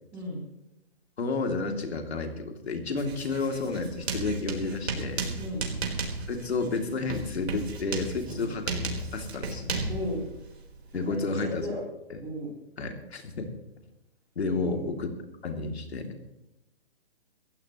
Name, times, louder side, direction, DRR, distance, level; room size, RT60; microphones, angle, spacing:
voice 1, 0.1-0.4 5.3-5.7 8.3-8.5 9.9-10.2 10.9-11.8 12.2-12.5 14.5-14.9, equal, 10° right, -4 dB, 3.9 m, -35 dB
voice 2, 1.2-5.3 6.3-8.7 9.1-9.7 10.9-11.7 12.1-12.2 12.8-13.5 14.3-15.1 15.4-16.1, left 3 dB, 85° left, 3 dB, 3.1 m, -31 dB
Writing, 3.0-11.6, right 3 dB, 85° right, 4.6 m, -35 dB
22.5 x 15.0 x 3.2 m, 0.89 s
hypercardioid pair, 170°, 31 cm